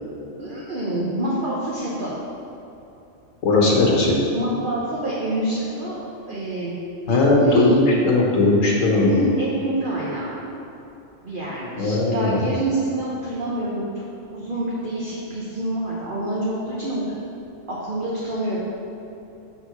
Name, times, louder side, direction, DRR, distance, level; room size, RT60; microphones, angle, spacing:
voice 1, 0.2-2.1 4.3-6.0 6.3-6.7 7.1-7.8 9.0-10.3 11.2-14.0 14.3-17.0 17.7-18.6, right 1 dB, 45° right, -6 dB, 1.0 m, -27 dB
voice 2, 3.4-4.2 7.1-9.1 11.8-12.4, left 2 dB, 80° left, -2 dB, 1.4 m, -18 dB
6.2 x 4.1 x 5.8 m, 2.9 s
omnidirectional pair, 1.3 m